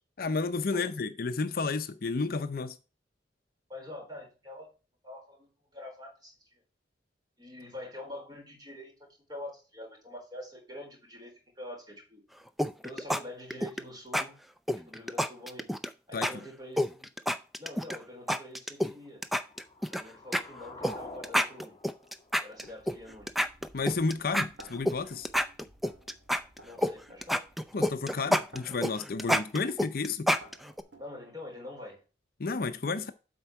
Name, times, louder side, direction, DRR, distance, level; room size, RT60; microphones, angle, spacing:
voice 1, 0.2-2.8 16.1-16.3 23.7-25.3 27.7-30.3 32.4-33.1, left 4 dB, 55° left, 0.6 m, -31 dB
voice 2, 3.7-4.7 5.0-6.6 7.4-12.2 12.8-14.3 14.9-15.7 16.1-17.1 17.6-19.2 19.9-21.8 22.4-23.3 26.6-27.5 31.0-32.0, left 1 dB, 25° right, 3.9 m, -45 dB
sound 1, 12.6-13.2 13.5-13.8 14.1-14.2 14.7-15.9 16.2-16.3 16.8-18.0 18.3-18.9 19.2-20.0 20.3-20.4 20.8-20.9 21.2-23.0 23.3-25.0 25.3-26.9 27.2-30.8, equal, ahead, 0.4 m, -28 dB
sound 2, 19.2-23.2, left 2 dB, 20° left, 1.2 m, -48 dB
sound 3, 21.2-21.3 22.0-31.0, right 1 dB, 75° right, 2.2 m, -56 dB
8.0 x 4.4 x 5.8 m
head